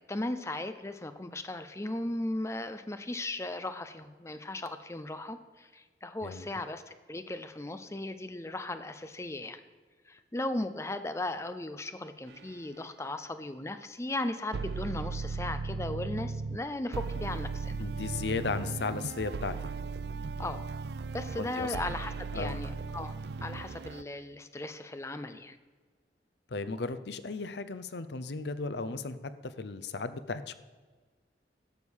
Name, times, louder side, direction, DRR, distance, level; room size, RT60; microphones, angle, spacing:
voice 1, 0.0-9.6 10.1-17.7 20.4-20.6 21.1-23.1 23.4-25.6, left 2 dB, 15° left, 10 dB, 0.6 m, -37 dB
sound 1, 12.3-12.5 14.5-16.6 16.9-24.0, right 4 dB, 65° right, 0.4 m, -37 dB
voice 2, 17.8-19.7 21.4-21.7 22.3-22.6 26.5-30.5, left 4 dB, 70° left, 12 dB, 0.7 m, -35 dB
12.0 x 6.4 x 7.2 m, 1.4 s
head